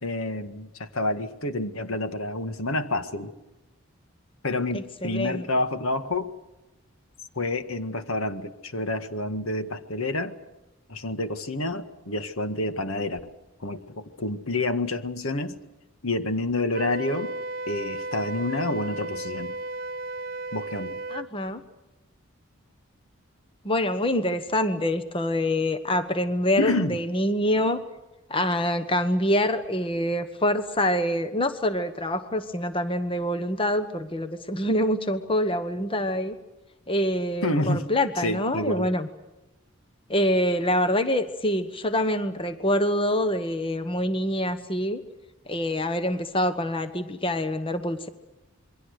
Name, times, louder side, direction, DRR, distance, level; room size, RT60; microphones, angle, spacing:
voice 1, 0.0-3.3 4.4-6.3 7.4-10.3 10.9-13.2 13.6-15.6 16.0-17.3 17.7-19.5 20.5-21.0 26.6-27.0 37.4-37.9 38.2-38.9, left 2 dB, 70° left, 9 dB, 1.7 m, -28 dB
voice 2, 4.7-5.4 21.1-21.6 23.6-27.8 28.3-36.3 36.9-39.1 40.1-45.0 45.5-48.1, left 1 dB, 25° left, 10 dB, 1.1 m, -25 dB
Wind instrument woodwind instrument, 16.7-21.3, right 2 dB, 40° right, 1.3 m, -34 dB
27.5 x 23.0 x 6.6 m, 0.99 s
head